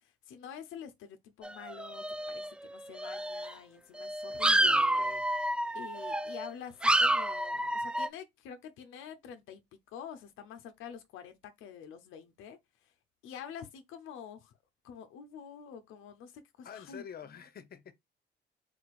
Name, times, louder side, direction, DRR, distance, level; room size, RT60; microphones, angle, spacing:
voice 1, 0.0-5.1 5.7-9.6 9.9-12.9 13.2-14.6 14.8-17.0, left 8 dB, 90° left, 0.7 m, -47 dB
sound 1, 1.4-2.7 3.0-3.5 4.0-6.5 6.8-8.1, right 1 dB, 5° right, 0.3 m, -29 dB
voice 2, 4.6-5.3 16.6-17.9, left 8 dB, 50° left, 0.8 m, -47 dB
3.8 x 2.5 x 4.6 m
cardioid pair, 90°, 20 cm